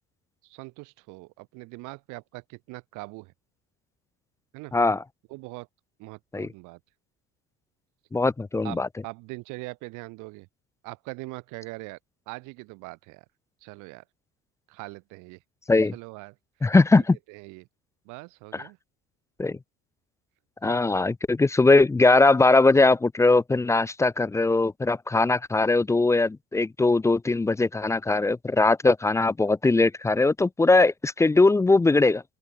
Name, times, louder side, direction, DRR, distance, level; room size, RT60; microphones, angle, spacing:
voice 1, 0.4-3.3 4.5-4.7 5.3-5.7 6.0-6.8 8.6-8.8 9.0-10.5 10.8-12.0 12.3-13.2 13.6-14.0 14.7-15.4 15.9-16.3 17.3-17.7 18.0-18.8 20.6-20.8, right 25 dB, 90° right, 6.5 m, -41 dB
voice 2, 8.1-8.9 15.7-15.9 16.6-17.2 19.4-19.6 20.6-32.2, left 3 dB, 10° left, 0.4 m, -20 dB
open air
cardioid pair, 120°, 30 cm